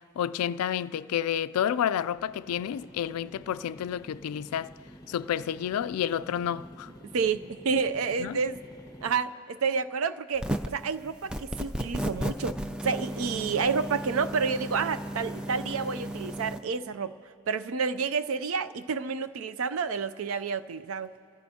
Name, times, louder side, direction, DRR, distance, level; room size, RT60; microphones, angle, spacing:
voice 1, 0.2-4.7 5.1-6.9 8.2-8.4, left 9 dB, 80° left, 0.3 m, -30 dB
sound 1, 1.7-9.2, left 1 dB, 15° left, 0.9 m, -50 dB
voice 2, 7.0-8.6 9.0-12.6 12.8-17.1 17.5-21.1, right 5 dB, 65° right, 0.4 m, -29 dB
sound 2, 10.4-10.8 11.3-16.6, right 1 dB, 5° right, 0.3 m, -34 dB
28.0 x 15.0 x 2.8 m
head